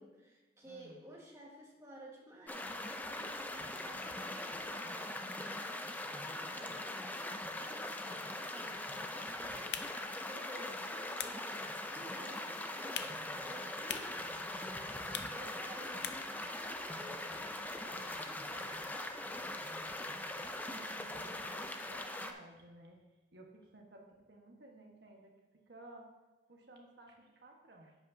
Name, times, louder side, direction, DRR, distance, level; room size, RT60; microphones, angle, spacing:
voice 1, 0.0-19.8, right 1 dB, 15° right, -2 dB, 1.5 m, -54 dB
voice 2, 0.6-1.1 15.4-15.5 20.7-23.0 23.3-25.3 25.7-26.1 26.5-28.0, right 2 dB, 60° right, 1 dB, 1.4 m, -56 dB
sound 1, 2.5-22.3, left 1 dB, 10° left, 0.4 m, -41 dB
sound 2, 9.5-16.4, left 9 dB, 65° left, 0.5 m, -47 dB
10.5 x 8.2 x 2.7 m, 1.2 s
head